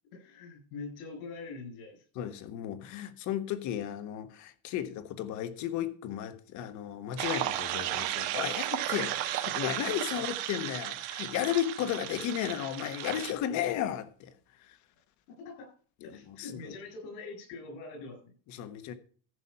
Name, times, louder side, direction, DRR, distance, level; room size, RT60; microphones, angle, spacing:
voice 1, 0.1-2.0 10.1-10.3 15.4-15.7 16.0-18.3, left 3 dB, 85° left, 7.6 m, -44 dB
voice 2, 2.1-14.3 14.6-14.8 16.0-16.7 18.5-18.9, left 11 dB, 45° left, 1.3 m, -34 dB
sound 1, 7.2-13.3, right 14 dB, 70° right, 1.9 m, -34 dB
14.5 x 6.3 x 5.5 m
cardioid pair, 170°, 42 cm